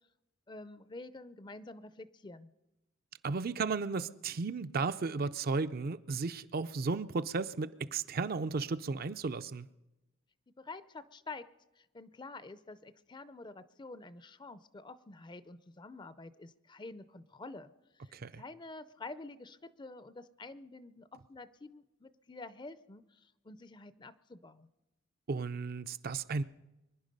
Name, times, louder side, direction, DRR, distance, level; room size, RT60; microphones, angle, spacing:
voice 1, 0.5-2.5 10.6-11.5 11.8-24.7, left 3 dB, 25° left, 0.5 m, -48 dB
voice 2, 3.2-9.7 18.1-18.4 25.3-26.4, right 4 dB, 50° right, 0.5 m, -34 dB
25.0 x 10.5 x 5.4 m
head